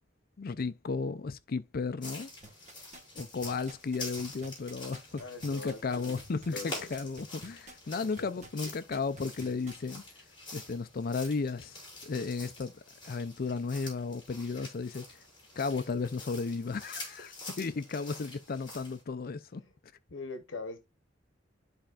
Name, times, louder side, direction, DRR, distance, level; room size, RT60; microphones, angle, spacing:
voice 1, 0.4-2.3 3.2-10.0 10.5-11.8 12.0-15.0 15.6-19.6, left 4 dB, 50° left, 0.5 m, -34 dB
sound 1, 2.0-19.0, left 2 dB, 25° left, 5.1 m, -46 dB
sound 2, 2.4-9.9 10.4-10.5, right 2 dB, 40° right, 1.5 m, -51 dB
voice 2, 5.2-6.9 7.8-8.3 19.6-19.7 20.1-20.8, left 3 dB, 75° left, 1.0 m, -43 dB
12.5 x 4.3 x 2.4 m
head